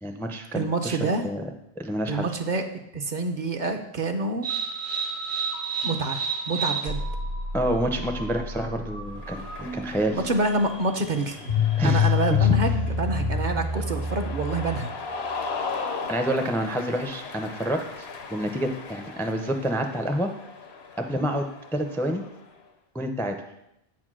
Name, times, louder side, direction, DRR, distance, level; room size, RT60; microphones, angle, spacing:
voice 1, 0.0-1.4 1.8-2.3 7.5-10.2 11.8-12.1 16.1-20.3 21.0-22.2 22.9-23.3, right 1 dB, 5° left, 5 dB, 0.4 m, -28 dB
voice 2, 0.5-1.2 2.1-2.6 2.9-4.5 5.8-6.2 6.5-7.0 10.1-11.4 11.8-14.9, right 2 dB, 55° right, 6 dB, 0.8 m, -27 dB
sound 1, 4.4-15.0, left 3 dB, 90° right, 1.8 m, -28 dB
Cheering, 9.1-22.6, left 4 dB, 85° left, 1.1 m, -38 dB
8.4 x 4.4 x 6.1 m, 0.84 s
omnidirectional pair, 1.0 m